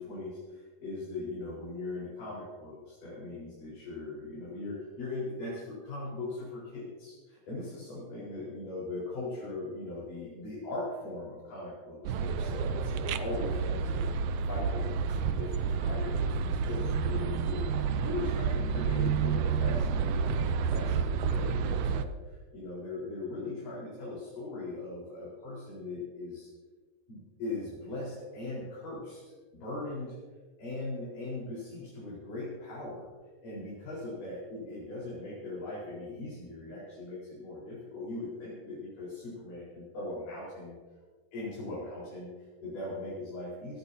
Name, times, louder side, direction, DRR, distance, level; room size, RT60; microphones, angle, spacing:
voice 1, 0.0-26.5 27.1-30.1 30.6-33.1 33.4-40.8 41.3-43.8, left 2 dB, 60° left, -8 dB, 6.3 m, -40 dB
sound 1, 12.0-22.0, right 6 dB, 85° right, 1.7 m, -30 dB
18.0 x 18.0 x 2.8 m, 1.5 s
omnidirectional pair, 4.3 m